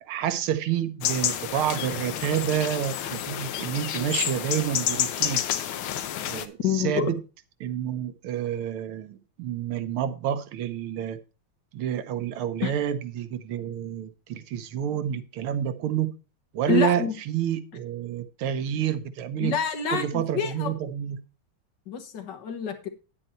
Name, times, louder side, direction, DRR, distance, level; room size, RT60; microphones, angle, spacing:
voice 1, 0.0-5.4 6.3-7.2 7.6-11.2 11.7-16.1 16.5-19.6 19.9-21.2, right 9 dB, 85° right, 11 dB, 1.7 m, -29 dB
sound 1, 1.0-6.5, left 10 dB, 80° left, 1.6 m, -29 dB
voice 2, 6.6-7.1 12.6-12.7 16.7-17.1 19.4-20.7 21.9-22.9, left 7 dB, 60° left, 7 dB, 1.7 m, -27 dB
9.3 x 8.3 x 4.3 m, 0.32 s
omnidirectional pair, 2.3 m